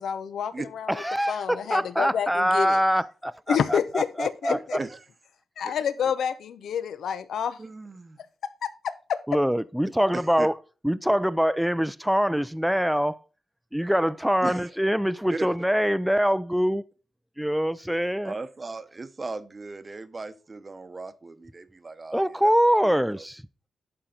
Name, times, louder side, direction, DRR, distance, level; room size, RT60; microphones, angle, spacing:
voice 1, 0.0-2.8 3.5-4.8 5.6-7.6 8.6-9.2, left 8 dB, 85° left, 0.6 m, -29 dB
voice 2, 0.9-4.8 9.3-10.5 10.8-13.2 13.7-16.8 17.4-18.3 22.1-23.4, equal, ahead, 0.4 m, -24 dB
voice 3, 4.5-5.0 5.6-5.7 7.6-8.2 10.1-10.5 14.4-14.7 15.3-15.5 18.2-22.2 22.8-23.2, right 3 dB, 30° right, 0.8 m, -37 dB
11.5 x 4.4 x 3.8 m
cardioid pair, 100°, 0 cm